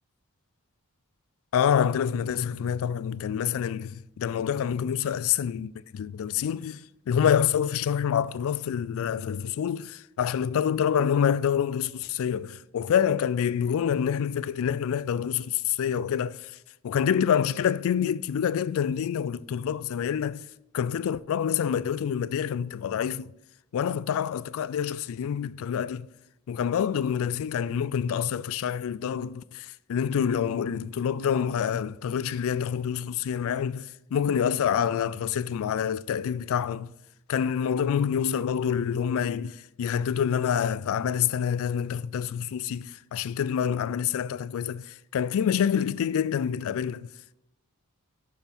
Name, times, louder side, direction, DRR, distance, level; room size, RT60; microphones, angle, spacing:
voice 1, 1.5-16.5 16.8-20.4 20.7-23.3 23.7-26.1 26.5-36.9 37.3-47.1, left 8 dB, 65° left, 0.3 m, -27 dB
5.7 x 5.4 x 6.0 m
head